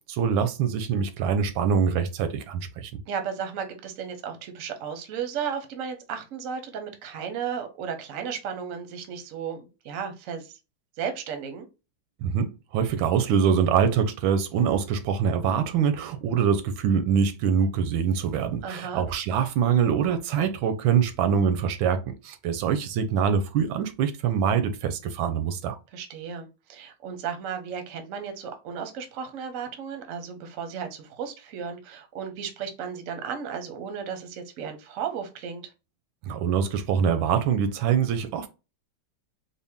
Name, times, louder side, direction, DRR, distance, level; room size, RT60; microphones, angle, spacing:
voice 1, 0.1-2.9 12.2-25.8 36.2-38.5, right 7 dB, 85° right, 1.4 m, -24 dB
voice 2, 3.1-10.6 11.0-11.7 18.6-19.0 25.9-35.7, right 7 dB, 60° right, 0.9 m, -34 dB
4.0 x 2.2 x 3.5 m
omnidirectional pair, 2.1 m